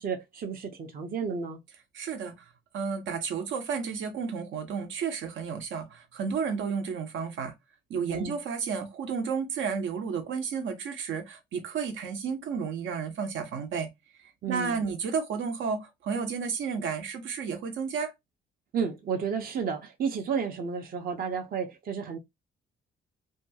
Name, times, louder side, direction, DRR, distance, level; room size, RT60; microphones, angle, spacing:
voice 1, 0.0-1.6 8.1-8.4 14.4-14.8 18.7-22.2, right 6 dB, 50° right, 0.7 m, -32 dB
voice 2, 1.9-7.5 7.9-13.9 14.2-18.1, right 6 dB, 75° right, 0.9 m, -32 dB
2.8 x 2.3 x 2.7 m
cardioid pair, 90°, 20 cm